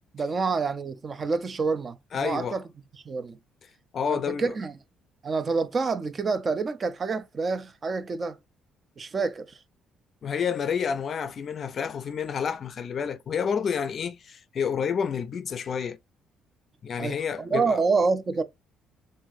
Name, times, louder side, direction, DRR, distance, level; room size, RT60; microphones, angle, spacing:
voice 1, 0.1-2.6 3.0-3.4 4.1-4.7 5.2-8.4 9.0-9.6 17.0-18.4, right 4 dB, 35° right, 0.5 m, -27 dB
voice 2, 2.1-2.6 3.9-4.5 10.2-16.0 16.8-17.8, left 7 dB, 50° left, 0.4 m, -29 dB
5.8 x 2.5 x 2.5 m
cardioid pair, 95°, 0 cm